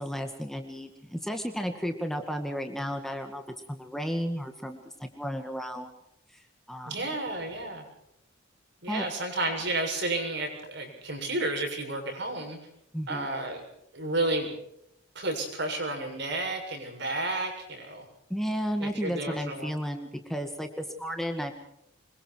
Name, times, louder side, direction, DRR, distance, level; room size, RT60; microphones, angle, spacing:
voice 1, 0.0-3.4 3.7-5.9 6.3-7.1 8.9-9.0 12.9-13.3 18.3-21.6, equal, ahead, 5 dB, 1.9 m, -33 dB
voice 2, 6.9-7.8 8.8-12.6 13.1-13.6 13.9-14.5 15.1-18.1 18.8-19.7, right 2 dB, 60° right, 2 dB, 7.3 m, -31 dB
26.0 x 23.0 x 4.7 m, 0.78 s
head